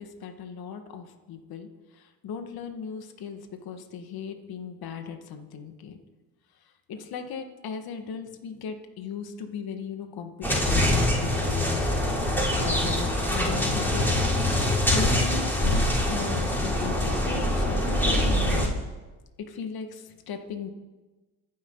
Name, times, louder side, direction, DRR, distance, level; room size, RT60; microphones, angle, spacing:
voice 1, 0.0-1.7 2.2-6.0 6.9-11.8 12.5-14.0 14.9-18.8 19.4-20.7, left 6 dB, 60° left, 6 dB, 2.0 m, -37 dB
sound 1, 10.4-18.7, left 1 dB, 5° left, 5.4 m, -24 dB
27.0 x 10.5 x 4.0 m, 1.2 s
supercardioid pair, 75°, 41 cm